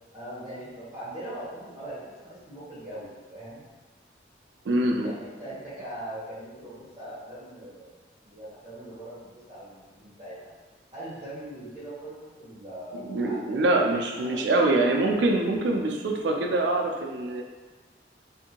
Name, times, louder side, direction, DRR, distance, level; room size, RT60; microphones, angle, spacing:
voice 1, 0.1-3.6 5.0-7.9 8.2-10.5 10.9-13.8 14.0-14.5, right 1 dB, 25° right, -14 dB, 1.0 m, -41 dB
voice 2, 4.7-5.1 12.9-17.4, right 2 dB, 80° right, 1 dB, 0.4 m, -24 dB
2.6 x 2.6 x 2.8 m, 1.3 s
head